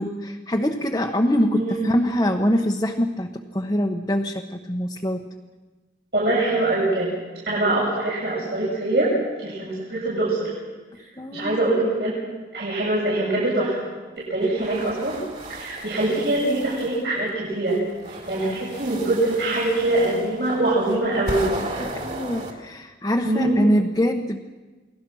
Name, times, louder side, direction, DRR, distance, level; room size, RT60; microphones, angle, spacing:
voice 1, 0.0-5.3 11.2-11.6 21.8-24.4, equal, 20° left, 0 dB, 1.1 m, -24 dB
voice 2, 1.5-1.9 6.1-7.1 7.5-9.1 9.4-10.5 11.3-12.2 12.5-13.9 14.2-15.2 15.5-17.8 18.1-21.4 23.2-23.6, right 2 dB, 70° right, -7 dB, 7.6 m, -23 dB
sound 1, 14.4-17.0 17.7-22.5, right 1 dB, 40° right, 3.5 m, -35 dB
29.0 x 20.0 x 6.4 m, 1.3 s
head